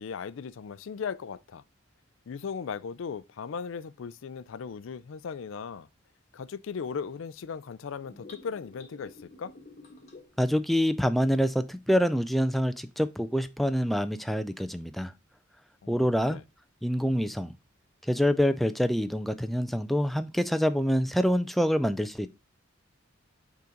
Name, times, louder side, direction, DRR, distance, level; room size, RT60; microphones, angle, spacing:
voice 1, 0.0-1.6 2.3-5.9 6.3-9.5 15.8-16.4, left 6 dB, 75° left, 0.4 m, -37 dB
sound 1, 8.0-10.5, left 2 dB, 35° left, 1.2 m, -50 dB
voice 2, 10.4-15.1 15.9-16.4 16.8-17.5 18.1-22.3, equal, ahead, 0.3 m, -26 dB
5.5 x 3.8 x 5.0 m
head